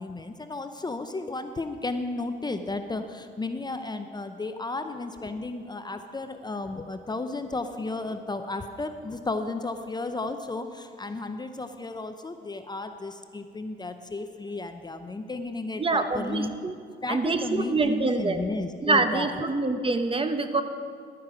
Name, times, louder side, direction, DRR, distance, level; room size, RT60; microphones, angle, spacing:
voice 1, 0.0-16.6 17.0-19.4, left 3 dB, 20° left, 8 dB, 0.6 m, -33 dB
voice 2, 15.8-16.7 17.1-18.4 18.8-20.6, right 3 dB, 25° right, 8 dB, 0.8 m, -25 dB
12.0 x 9.3 x 4.9 m, 2.2 s
cardioid pair, 90°, 20 cm